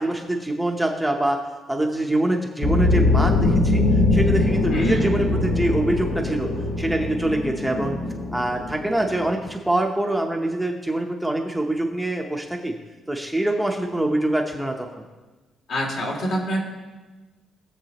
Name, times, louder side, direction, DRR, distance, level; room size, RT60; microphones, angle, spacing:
voice 1, 0.0-1.4 1.7-3.8 4.1-6.5 6.8-8.0 8.3-12.7 13.1-15.0, right 1 dB, ahead, 1 dB, 0.8 m, -24 dB
sound 1, 2.6-9.3, left 2 dB, 75° left, 2.0 m, -22 dB
voice 2, 4.7-5.1 15.7-16.6, equal, 60° left, -1 dB, 2.6 m, -26 dB
19.5 x 7.4 x 2.9 m, 1.2 s
cardioid pair, 150°, 0 cm